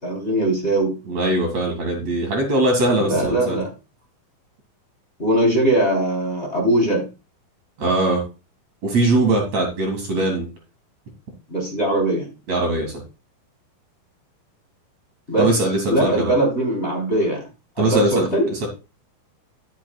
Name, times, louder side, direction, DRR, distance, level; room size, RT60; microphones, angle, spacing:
voice 1, 0.0-0.9 3.0-3.7 5.2-7.0 11.5-12.3 15.3-15.5 15.9-17.5 17.8-18.5, right 1 dB, 20° left, 0 dB, 3.5 m, -20 dB
voice 2, 1.1-3.6 7.8-8.2 8.8-10.5 12.5-12.9 15.4-16.3 17.8-18.7, right 2 dB, 50° right, 2 dB, 3.0 m, -21 dB
10.5 x 10.5 x 2.3 m, 0.30 s
omnidirectional pair, 4.1 m